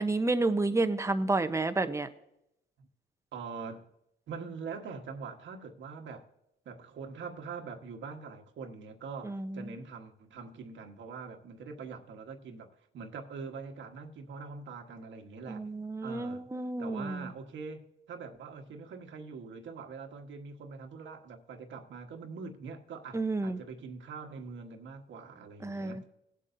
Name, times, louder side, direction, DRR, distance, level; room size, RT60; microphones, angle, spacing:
voice 1, 0.0-2.1 9.2-9.7 15.5-17.2 23.1-23.6 25.6-26.1, right 2 dB, 15° right, 0.9 m, -30 dB
voice 2, 3.3-3.9 4.3-6.3 6.6-15.7 16.0-16.5 16.8-26.0, right 5 dB, 70° right, 1.4 m, -43 dB
19.0 x 8.2 x 2.7 m
cardioid pair, 90°, 20 cm